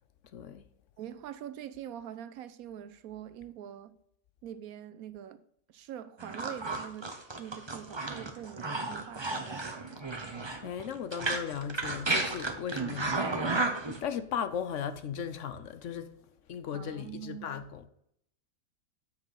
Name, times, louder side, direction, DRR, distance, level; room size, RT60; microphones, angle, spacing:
voice 1, 0.3-0.6 10.6-13.3 14.0-17.9, left 8 dB, 65° left, 1.0 m, -37 dB
voice 2, 1.0-3.9 4.4-5.4 5.7-7.1 7.4-9.8 16.7-17.6, right 10 dB, 85° right, 1.1 m, -44 dB
sound 1, 6.2-14.0, right 3 dB, 25° right, 0.8 m, -33 dB
7.7 x 6.1 x 5.7 m
omnidirectional pair, 1.5 m